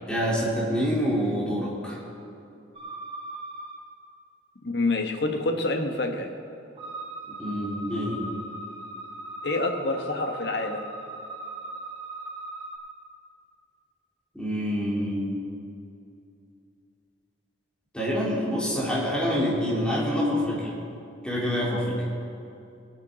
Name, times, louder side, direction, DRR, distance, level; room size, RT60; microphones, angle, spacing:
voice 1, 0.1-2.0 7.3-8.2 14.3-15.3 17.9-20.7 21.2-22.0, equal, 5° left, -6 dB, 3.3 m, -26 dB
sound 1, 2.7-3.8 6.8-12.8, right 2 dB, 30° right, 1.7 m, -39 dB
voice 2, 4.6-6.3 9.4-10.8, left 2 dB, 65° left, 4 dB, 1.2 m, -27 dB
20.5 x 8.1 x 5.1 m, 2.6 s
head